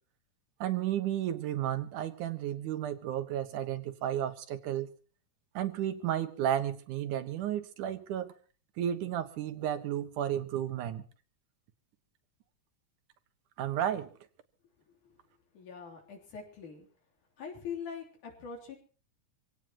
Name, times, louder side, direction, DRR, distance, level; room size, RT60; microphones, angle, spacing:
voice 1, 0.6-4.9 5.5-8.3 8.8-11.0 13.6-14.1, right 11 dB, 90° right, 9 dB, 2.8 m, -33 dB
voice 2, 15.5-16.9 17.4-18.8, left 6 dB, 85° left, 1 dB, 4.8 m, -43 dB
25.5 x 17.0 x 3.0 m, 0.38 s
omnidirectional pair, 3.4 m